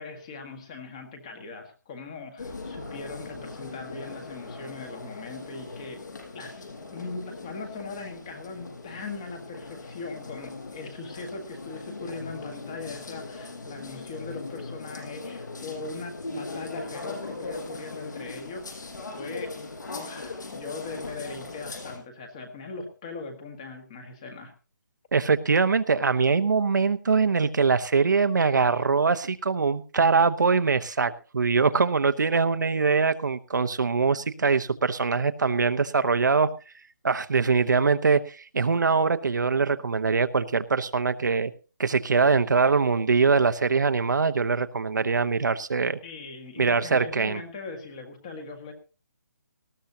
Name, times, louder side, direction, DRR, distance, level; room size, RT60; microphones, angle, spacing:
voice 1, 0.0-6.0 6.3-18.8 19.1-19.5 19.9-24.5 46.0-48.7, left 3 dB, 15° left, 6 dB, 1.5 m, -40 dB
sound 1, 2.4-22.0, left 3 dB, 60° left, 6.0 m, -39 dB
voice 2, 25.1-36.5 37.0-41.5 41.8-46.0 46.6-47.4, right 4 dB, 60° right, 11 dB, 1.0 m, -23 dB
19.0 x 14.5 x 2.8 m, 0.33 s
hypercardioid pair, 180°, 11 cm